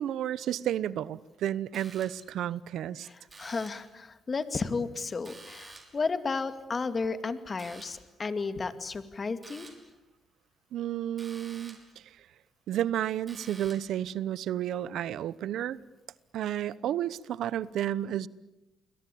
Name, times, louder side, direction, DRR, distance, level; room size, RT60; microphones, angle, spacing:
voice 1, 0.0-3.1 10.7-12.3 12.7-15.8 16.3-18.3, right 11 dB, 75° right, 19 dB, 0.9 m, -32 dB
sound 1, 1.7-2.4 3.3-4.0 5.2-6.1 7.6-8.1 9.4-9.9 11.2-12.0 13.3-14.0, right 3 dB, 30° right, 6.0 m, -50 dB
voice 2, 3.0-9.7, left 4 dB, 35° left, 10 dB, 2.3 m, -33 dB
29.5 x 22.0 x 8.6 m, 1.0 s
cardioid pair, 90°, 0 cm